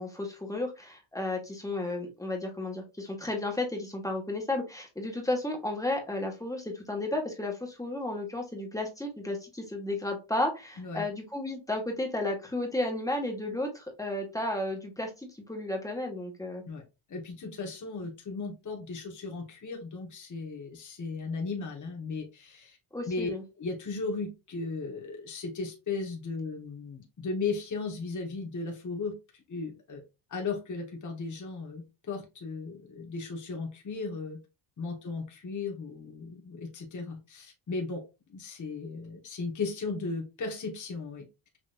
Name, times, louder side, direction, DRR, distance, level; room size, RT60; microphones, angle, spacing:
voice 1, 0.0-16.6 22.9-23.4, left 2 dB, 5° left, 1 dB, 1.5 m, -33 dB
voice 2, 17.1-22.8 23.1-23.3 23.6-30.0 30.3-34.4 34.8-38.0 38.3-41.2, left 4 dB, 40° left, 2 dB, 1.3 m, -36 dB
6.1 x 3.0 x 2.5 m, 0.27 s
cardioid pair, 125°, 47 cm